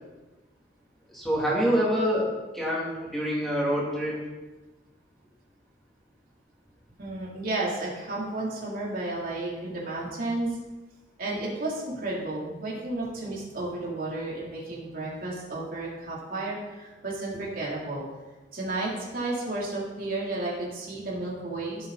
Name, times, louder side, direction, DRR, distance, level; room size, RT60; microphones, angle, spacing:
voice 1, 1.1-4.2, equal, ahead, -6 dB, 3.1 m, -26 dB
voice 2, 7.0-10.5 11.2-18.0 18.5-21.9, right 2 dB, 50° right, -4 dB, 3.4 m, -32 dB
16.0 x 8.1 x 4.2 m, 1.2 s
head